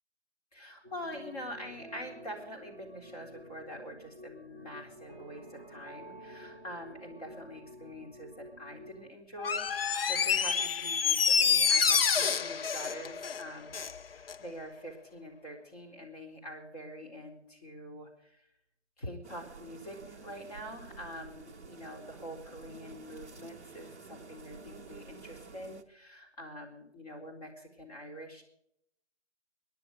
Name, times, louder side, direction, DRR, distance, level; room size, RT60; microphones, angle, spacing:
voice 1, 0.5-18.5 19.0-28.4, equal, 35° left, 1 dB, 4.0 m, -45 dB
sound 1, 0.8-9.1, equal, 20° left, 1.5 m, -50 dB
Door, 9.4-14.0 14.3-14.4, left 6 dB, 60° left, 0.5 m, -27 dB
sound 2, 19.2-25.8, right 4 dB, 15° right, 0.7 m, -50 dB
25.0 x 11.0 x 5.0 m, 0.76 s
hypercardioid pair, 170°, 33 cm